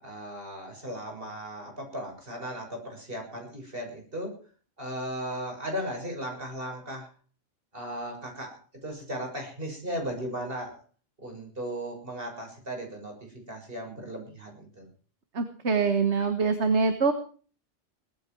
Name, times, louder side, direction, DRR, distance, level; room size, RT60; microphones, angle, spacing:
voice 1, 0.0-4.4 4.8-7.1 7.7-10.8 11.2-14.9, equal, 45° right, 2 dB, 6.8 m, -36 dB
voice 2, 15.3-17.1, right 4 dB, 65° right, 8 dB, 1.8 m, -24 dB
18.5 x 14.5 x 4.7 m, 0.42 s
omnidirectional pair, 1.3 m